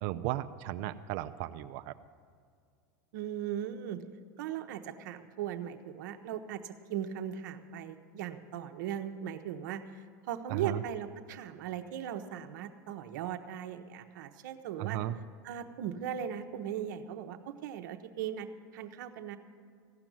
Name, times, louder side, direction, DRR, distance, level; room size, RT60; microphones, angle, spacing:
voice 1, 0.0-1.9 10.5-10.8 14.8-15.2, right 14 dB, 65° right, 10 dB, 0.5 m, -35 dB
voice 2, 3.1-4.0 4.4-9.8 10.3-15.0 15.4-18.5 18.7-19.4, right 9 dB, 80° right, 6 dB, 0.9 m, -38 dB
15.5 x 6.0 x 9.3 m, 2.2 s
supercardioid pair, 120°, 10 cm